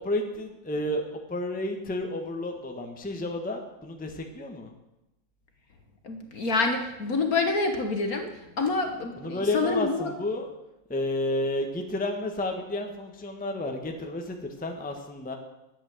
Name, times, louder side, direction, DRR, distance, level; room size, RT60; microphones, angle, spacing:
voice 1, 0.0-4.7 9.2-10.5 10.9-15.3, left 1 dB, 5° left, 3 dB, 1.1 m, -31 dB
voice 2, 6.0-10.1, left 3 dB, 50° left, 5 dB, 1.5 m, -27 dB
11.5 x 8.6 x 8.0 m, 0.95 s
omnidirectional pair, 2.3 m